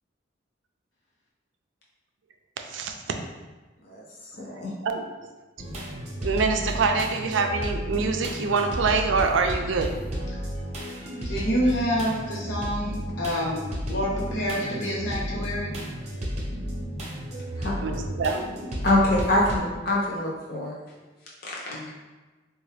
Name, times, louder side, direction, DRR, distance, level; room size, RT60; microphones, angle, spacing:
voice 1, 2.7-3.2 4.8-5.1 6.2-9.9 17.8-18.4, right 4 dB, 80° right, 4 dB, 0.4 m, -25 dB
voice 2, 4.4-4.7 17.6-17.7 18.8-20.8 21.4-21.5, left 1 dB, 50° left, -5 dB, 0.6 m, -24 dB
sound 1, 5.6-19.6, equal, 35° right, 0.6 m, -33 dB
voice 3, 11.2-15.7 21.7-21.8, equal, 75° left, -4 dB, 1.0 m, -27 dB
3.7 x 2.3 x 3.3 m, 1.2 s
head